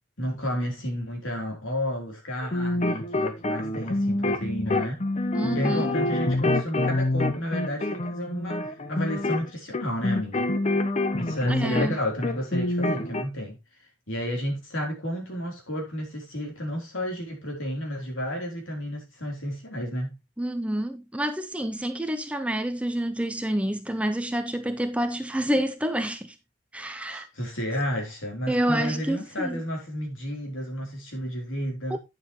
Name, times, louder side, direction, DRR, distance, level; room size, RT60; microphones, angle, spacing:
voice 1, 0.2-5.0 5.5-10.5 11.2-13.6 14.1-20.2 27.1-32.0, equal, 65° left, 3.7 m, -32 dB
sound 1, 2.4-12.0 12.2-13.2, left 2 dB, 30° left, 0.9 m, -26 dB
voice 2, 5.3-5.9 11.5-12.0 20.4-26.3 26.7-27.3 28.5-29.6 31.9-32.0, right 1 dB, 5° right, 0.5 m, -28 dB
9.3 x 7.3 x 3.1 m
head